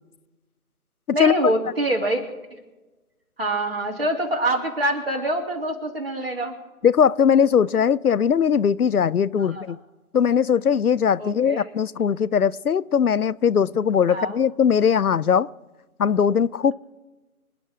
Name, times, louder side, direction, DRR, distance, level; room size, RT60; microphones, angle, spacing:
voice 1, 1.1-2.6 3.4-6.6 9.4-9.6 11.2-11.6 14.1-14.4, right 1 dB, 40° right, 1 dB, 2.4 m, -25 dB
voice 2, 6.8-9.8 10.1-15.5 16.0-16.7, left 7 dB, 80° left, 21 dB, 0.5 m, -20 dB
26.0 x 9.9 x 3.7 m, 1.1 s
figure-of-eight pair, 165°, 44 cm